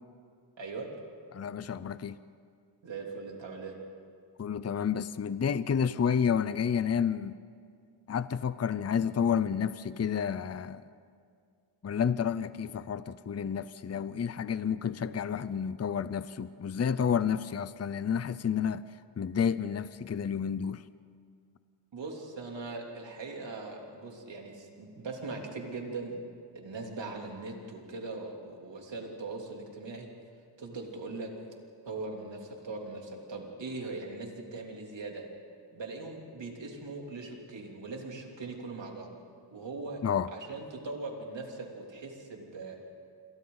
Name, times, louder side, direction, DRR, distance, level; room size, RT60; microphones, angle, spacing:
voice 1, 0.6-0.9 2.8-3.7 21.9-26.2 26.5-30.1 30.6-31.3 31.8-35.2 35.7-39.1 39.5-40.0 40.3-42.8, right 3 dB, 80° right, 0 dB, 3.3 m, -40 dB
voice 2, 1.3-2.2 4.4-7.4 8.1-10.8 11.8-18.8 19.2-20.8 40.0-40.3, left 7 dB, 35° left, 15 dB, 0.6 m, -30 dB
28.0 x 27.5 x 4.0 m, 2.2 s
wide cardioid pair, 85°, 43 cm